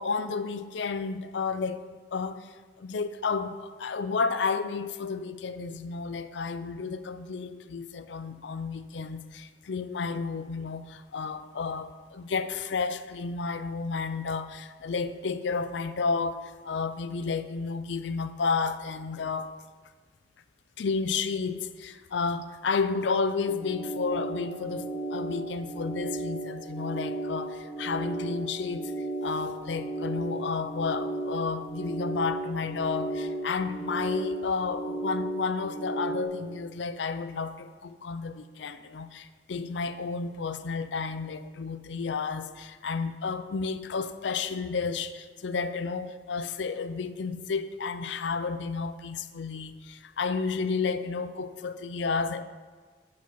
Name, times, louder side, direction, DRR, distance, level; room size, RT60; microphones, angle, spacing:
voice 1, 0.0-1.8 2.1-19.5 20.8-28.9 29.2-52.4, left 4 dB, 80° left, 0.5 m, -31 dB
sound 1, 23.5-36.2, right 2 dB, 25° left, 1.0 m, -34 dB
10.0 x 5.0 x 5.6 m
head